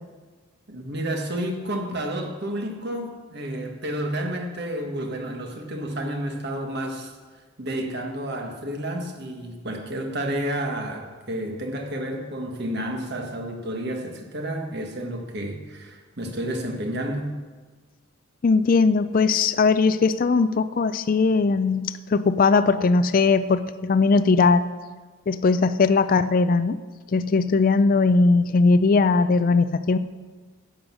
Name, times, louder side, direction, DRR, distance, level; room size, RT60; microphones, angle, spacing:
voice 1, 0.7-7.1 7.6-17.3, right 1 dB, 50° right, 3 dB, 1.5 m, -30 dB
voice 2, 18.4-24.6 25.3-26.8 27.1-30.0, left 4 dB, 40° left, 12 dB, 0.3 m, -19 dB
11.0 x 8.0 x 6.1 m, 1.4 s
head